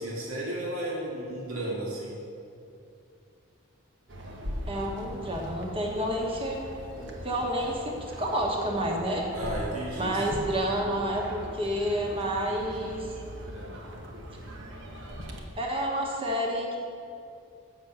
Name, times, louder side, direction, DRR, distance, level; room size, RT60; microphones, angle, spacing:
voice 1, 0.0-2.1 9.3-10.4, right 1 dB, 85° right, -3 dB, 2.0 m, -33 dB
sound 1, 4.1-15.4, equal, 55° right, 1.1 m, -40 dB
voice 2, 4.7-6.6 7.0-9.2 10.0-13.1 15.5-16.8, equal, 25° right, 0 dB, 1.2 m, -29 dB
7.9 x 6.2 x 7.1 m, 2.6 s
head